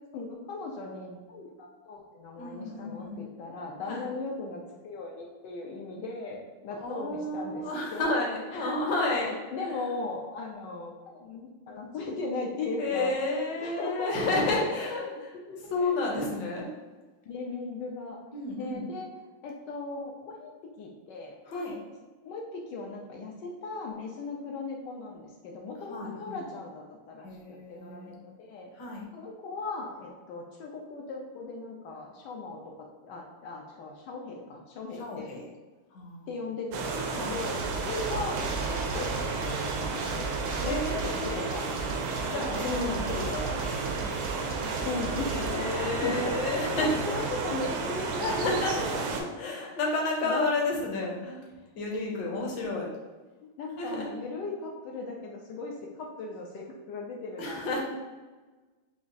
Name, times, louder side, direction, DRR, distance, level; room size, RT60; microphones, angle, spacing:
voice 1, 0.1-8.1 8.5-14.7 15.0-16.2 17.3-18.2 18.6-19.1 19.4-20.5 20.8-21.8 22.2-28.7 29.1-35.3 36.3-43.2 44.8-49.8 50.2-50.5 52.3-52.5 53.4-57.8, left 3 dB, 75° left, 0 dB, 1.0 m, -38 dB
voice 2, 2.3-3.2 3.8-4.1 6.8-9.3 9.7-9.8 12.8-15.4 15.7-16.7 18.3-18.9 21.5-21.8 25.9-26.4 27.2-28.1 28.8-29.1 35.0-35.5 35.9-36.3 37.1-37.6 40.6-41.4 42.3-44.0 45.3-47.2 48.2-48.9 49.4-51.4 51.8-52.9 53.8-54.1 57.4-57.8, left 2 dB, 60° left, -1 dB, 1.4 m, -31 dB
sound 1, 36.7-49.2, right 4 dB, 85° right, 1.5 m, -32 dB
sound 2, 37.3-46.2, right 4 dB, 70° right, 0.9 m, -38 dB
7.0 x 2.4 x 2.6 m, 1.3 s
omnidirectional pair, 2.4 m